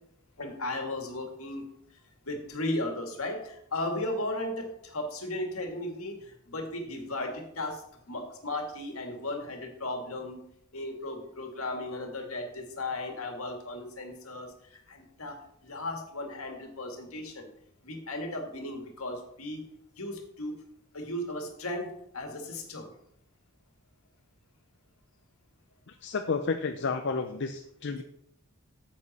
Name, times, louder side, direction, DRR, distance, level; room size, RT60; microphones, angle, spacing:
voice 1, 0.4-1.6 2.3-7.8 8.1-10.4 10.7-15.4 15.6-17.5 17.8-19.7 20.0-20.6 20.9-22.9, left 1 dB, 75° left, 3 dB, 2.0 m, -36 dB
voice 2, 25.9-28.0, left 4 dB, 55° left, 5 dB, 0.6 m, -31 dB
9.5 x 7.4 x 4.2 m, 0.72 s
head